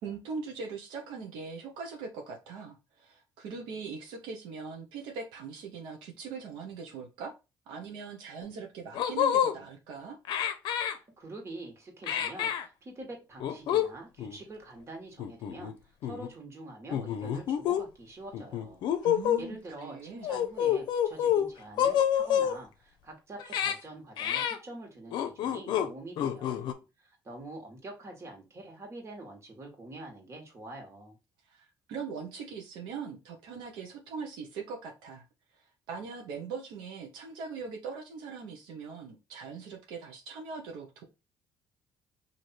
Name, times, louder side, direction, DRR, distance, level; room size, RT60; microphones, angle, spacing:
voice 1, 0.0-7.3 7.7-10.2 19.0-20.3 31.5-35.2 35.5-41.0, right 5 dB, 90° right, 0.8 m, -41 dB
sound 1, 8.4-8.5 8.9-9.5 10.3-10.9 12.0-12.6 13.4-13.9 14.2-14.4 15.2-15.7 16.0-16.3 16.9-17.8 18.3-19.4 20.2-21.5 21.8-22.6 23.4-23.7 24.2-24.6 25.1-25.9 26.2-26.7, left 9 dB, 75° left, 0.6 m, -28 dB
voice 2, 10.9-18.8 19.4-26.7 27.0-31.2, right 2 dB, 35° right, 1.5 m, -46 dB
3.2 x 2.6 x 4.3 m
cardioid pair, 95°, 8 cm